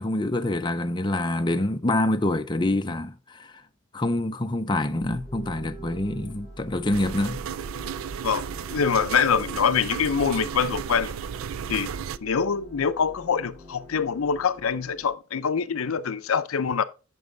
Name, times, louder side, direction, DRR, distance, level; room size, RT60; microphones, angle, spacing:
voice 1, 0.0-3.5 3.9-7.4, left 1 dB, 20° left, 0.5 m, -26 dB
sound 1, 5.0-15.1, equal, 20° right, 3.8 m, -44 dB
sound 2, 6.9-12.2, right 8 dB, 75° right, 0.4 m, -34 dB
voice 2, 8.7-11.2 11.7-11.9 12.2-16.8, left 6 dB, 85° left, 0.6 m, -24 dB
8.9 x 6.2 x 3.8 m
head